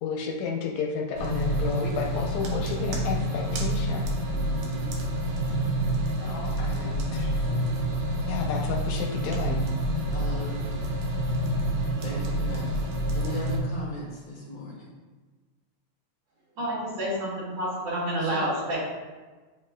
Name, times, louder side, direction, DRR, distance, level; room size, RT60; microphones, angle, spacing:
voice 1, 0.0-4.1 6.0-7.5 8.3-9.7, left 5 dB, 80° left, 0 dB, 1.9 m, -32 dB
sound 1, 1.2-13.6, right 1 dB, 90° right, 2.3 m, -28 dB
voice 2, 4.3-5.0 10.1-10.7 12.0-12.8 13.1-14.9 18.2-18.5, left 1 dB, 40° left, -3 dB, 1.4 m, -38 dB
voice 3, 16.6-18.8, right 1 dB, 65° right, -8 dB, 3.2 m, -29 dB
7.2 x 5.9 x 2.2 m, 1.3 s
omnidirectional pair, 3.3 m